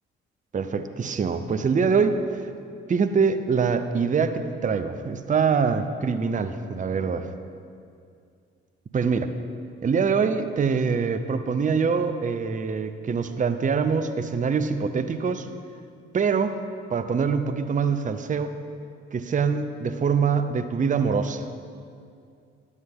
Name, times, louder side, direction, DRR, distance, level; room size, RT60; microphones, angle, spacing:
voice 1, 0.5-2.2 2.9-7.2 8.9-9.3 9.8-15.5 16.1-16.6 16.9-18.6 19.1-21.5, right 5 dB, 25° right, 9 dB, 0.6 m, -24 dB
11.0 x 8.0 x 3.6 m, 2.4 s
hypercardioid pair, 45°, 30 cm